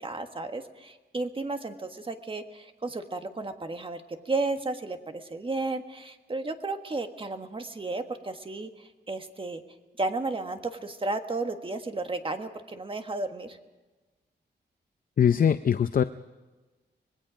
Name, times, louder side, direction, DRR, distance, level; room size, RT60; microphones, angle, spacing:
voice 1, 0.0-9.6 10.0-13.6, right 3 dB, 30° right, 6 dB, 1.5 m, -33 dB
voice 2, 15.2-16.0, left 8 dB, 50° left, 11 dB, 0.6 m, -22 dB
26.0 x 20.0 x 5.1 m, 1.2 s
wide cardioid pair, 140°, 18 cm